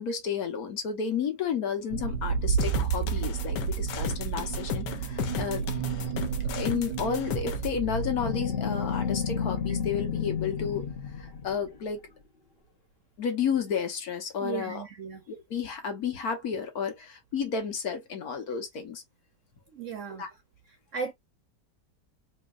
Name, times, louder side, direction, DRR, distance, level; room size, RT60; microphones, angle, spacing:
voice 1, 0.0-5.6 6.5-10.9 11.2-12.0 13.2-14.8 15.3-19.0 20.2-20.3, left 6 dB, 60° left, 1.5 m, -32 dB
sound 1, 1.9-9.3 9.5-9.7 10.2-10.3, right 7 dB, 85° right, 1.2 m, -31 dB
sound 2, 2.6-7.7, left 9 dB, 85° left, 1.4 m, -35 dB
sound 3, 7.4-11.8, left 7 dB, 45° left, 0.9 m, -32 dB
voice 2, 14.4-15.2 19.7-20.3 20.9-21.1, right 6 dB, 60° right, 0.9 m, -35 dB
4.4 x 2.8 x 2.4 m
omnidirectional pair, 1.9 m